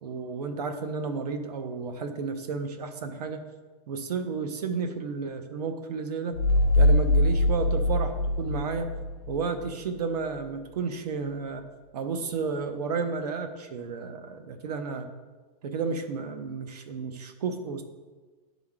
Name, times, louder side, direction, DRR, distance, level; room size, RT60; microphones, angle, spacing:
voice 1, 0.0-3.5 3.9-6.4 6.8-8.9 9.3-11.6 11.9-15.1 15.6-17.8, right 5 dB, 80° right, 8 dB, 0.9 m, -32 dB
sound 1, 6.3-9.7, left 1 dB, 40° left, 0.8 m, -23 dB
10.5 x 3.6 x 3.6 m, 1.3 s
supercardioid pair, 170°, 20 cm